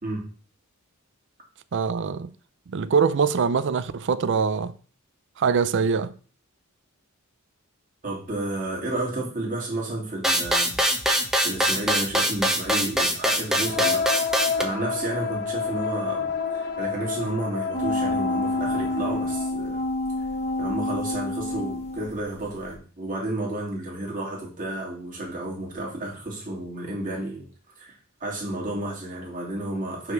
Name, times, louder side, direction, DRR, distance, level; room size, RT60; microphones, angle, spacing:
voice 1, 1.7-2.3 2.7-4.7 5.4-6.1, right 5 dB, 55° right, 0.4 m, -23 dB
voice 2, 8.0-10.7 11.4-14.0 14.6-19.8 20.6-27.5 27.8-30.1, right 2 dB, 40° right, 2.8 m, -31 dB
sound 1, 10.2-14.6, equal, ahead, 0.8 m, -23 dB
sound 2, 13.6-19.5, left 6 dB, 55° left, 1.0 m, -29 dB
sound 3, 17.7-22.3 22.7-22.8, left 2 dB, 30° left, 1.0 m, -28 dB
5.7 x 3.8 x 6.0 m
head